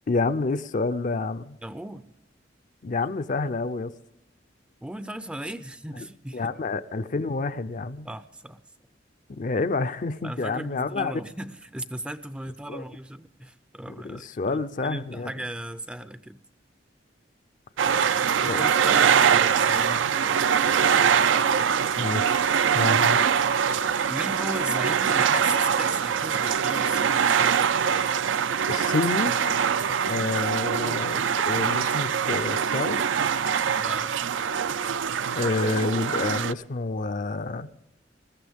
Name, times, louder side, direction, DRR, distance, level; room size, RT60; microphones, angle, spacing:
voice 1, 0.1-1.6 2.8-3.9 6.3-8.1 9.3-11.1 12.7-12.8 13.9-15.3 18.5-18.7 22.0-22.4 22.7-23.3 28.7-29.4 30.0-33.0 35.3-37.7, left 3 dB, 45° left, 0.5 m, -28 dB
voice 2, 1.6-2.0 4.8-6.5 8.0-8.6 10.2-16.4 18.4-21.0 24.1-27.3 29.7-30.0 33.7-34.3, right 1 dB, 5° right, 0.4 m, -37 dB
sound 1, 17.8-36.5, right 7 dB, 80° right, 0.5 m, -23 dB
20.5 x 14.5 x 3.5 m
head